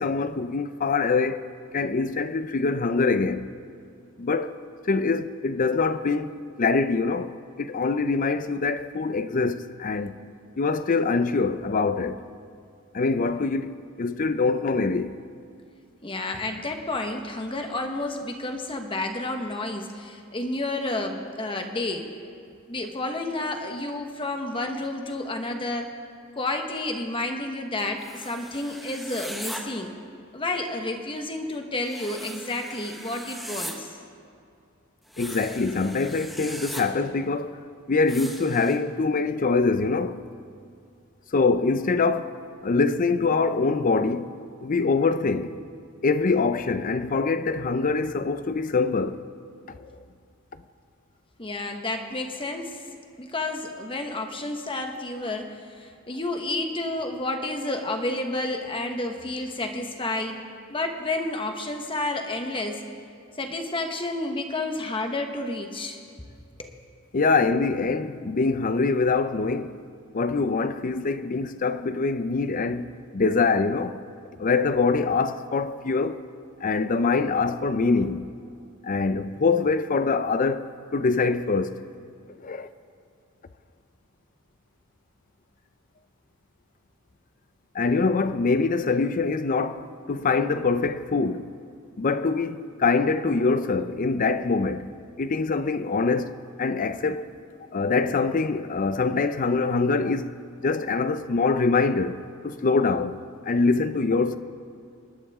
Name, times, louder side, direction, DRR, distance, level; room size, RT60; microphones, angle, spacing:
voice 1, 0.0-1.5 1.7-3.5 4.2-4.5 4.8-10.2 10.6-12.2 12.9-15.1 35.2-37.6 37.9-40.2 41.3-42.4 42.6-44.3 44.6-45.6 46.0-49.2 49.7-49.9 67.1-69.8 70.1-74.0 74.4-76.2 76.6-78.3 78.8-81.8 82.4-82.7 87.7-91.5 92.0-94.9 95.2-96.3 96.6-97.3 97.7-100.3 100.6-103.2 103.5-104.4, left 4 dB, 40° left, 0.5 m, -24 dB
voice 2, 16.0-22.1 22.7-25.9 26.4-29.9 30.3-34.0 51.4-52.8 53.2-60.4 60.7-62.8 63.4-66.0 66.6-66.7, left 2 dB, 25° left, 1.3 m, -30 dB
sound 1, 28.0-29.6 31.8-33.7 35.1-36.8 38.1-38.8, equal, ahead, 1.3 m, -39 dB
25.5 x 11.5 x 3.6 m
head